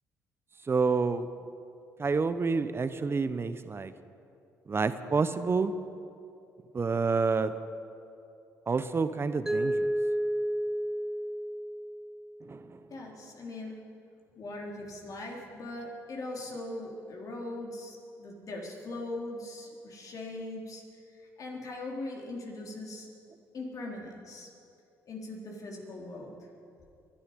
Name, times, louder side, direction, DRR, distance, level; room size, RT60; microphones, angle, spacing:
voice 1, 0.7-1.3 2.0-3.9 4.7-5.7 6.7-7.5 8.7-9.9 12.4-12.8, right 4 dB, 35° right, 12 dB, 0.9 m, -28 dB
Mallet percussion, 9.5-12.4, right 1 dB, 5° right, 0.8 m, -31 dB
voice 2, 12.9-13.8 14.4-20.8 21.4-23.1 23.5-24.5 25.1-26.4, left 2 dB, 55° left, -1 dB, 3.7 m, -40 dB
23.0 x 11.5 x 5.3 m, 2.6 s
hypercardioid pair, 60°, 7 cm